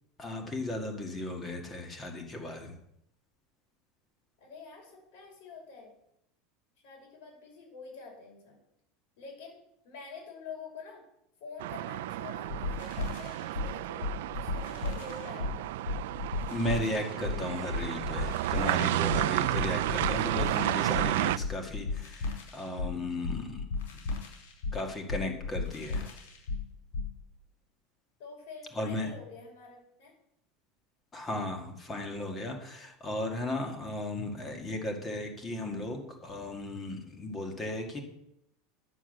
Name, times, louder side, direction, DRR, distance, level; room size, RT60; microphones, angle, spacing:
voice 1, 0.2-2.8 16.5-23.7 24.7-26.2 28.7-29.1 31.1-38.0, left 1 dB, 20° left, 3 dB, 1.9 m, -35 dB
voice 2, 4.4-5.9 6.8-8.6 9.2-9.6 9.8-11.0 11.4-15.9 28.2-30.1, left 4 dB, 60° left, -1 dB, 6.0 m, -47 dB
sound 1, 11.6-21.4, right 15 dB, 80° right, 0.4 m, -32 dB
sound 2, 12.5-27.2, left 4 dB, 90° left, 4.7 m, -35 dB
10.5 x 7.3 x 7.9 m, 0.77 s
supercardioid pair, 155°, 0 cm